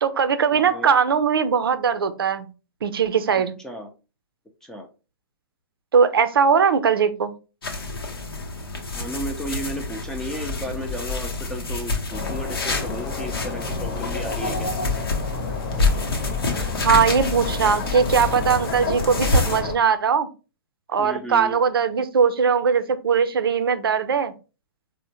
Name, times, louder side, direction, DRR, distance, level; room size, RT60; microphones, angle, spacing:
voice 1, 0.0-2.5 2.8-3.5 5.9-7.3 16.8-20.3 20.9-24.3, right 6 dB, 75° right, 11 dB, 0.5 m, -20 dB
voice 2, 0.5-0.9 3.4-3.9 4.6-4.9 8.9-14.7 21.0-21.6, equal, 5° left, 2 dB, 0.4 m, -34 dB
sound 1, 7.6-19.6, left 3 dB, 80° left, 0.8 m, -27 dB
sound 2, 12.1-19.7, left 4 dB, 40° left, 0.8 m, -30 dB
4.2 x 2.1 x 2.8 m, 0.32 s
hypercardioid pair, 125°, 12 cm